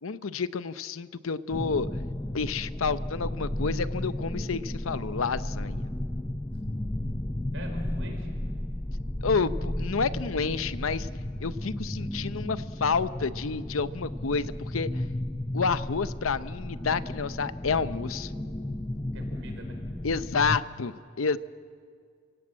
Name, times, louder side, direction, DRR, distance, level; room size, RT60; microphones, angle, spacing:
voice 1, 0.0-1.9 2.3-5.9 9.2-11.1 11.4-15.0 15.5-18.3 20.0-20.9 21.2-21.4, left 5 dB, 90° left, 14 dB, 0.7 m, -29 dB
sound 1, 1.5-20.6, left 1 dB, 15° left, 0.6 m, -34 dB
voice 2, 7.5-8.3 19.1-19.8, right 1 dB, 70° right, 3 dB, 5.0 m, -44 dB
29.5 x 16.5 x 8.7 m, 2.1 s
head